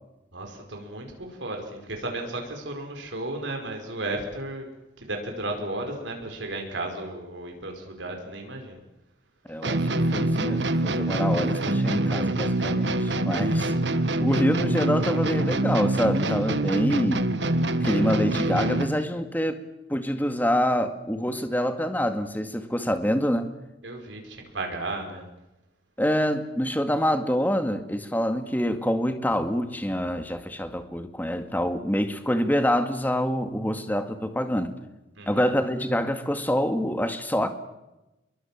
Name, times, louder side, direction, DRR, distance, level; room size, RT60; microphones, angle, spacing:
voice 1, 0.3-4.7 5.0-8.8 23.8-25.3 35.2-35.4, right 2 dB, 90° right, 3 dB, 5.0 m, -34 dB
voice 2, 9.5-13.7 14.2-17.3 17.8-19.6 19.9-23.5 26.0-34.7 35.3-37.5, equal, 10° left, 7 dB, 2.1 m, -26 dB
sound 1, 9.6-19.0, right 2 dB, 75° right, 1.5 m, -25 dB
26.0 x 23.0 x 7.5 m, 0.97 s
head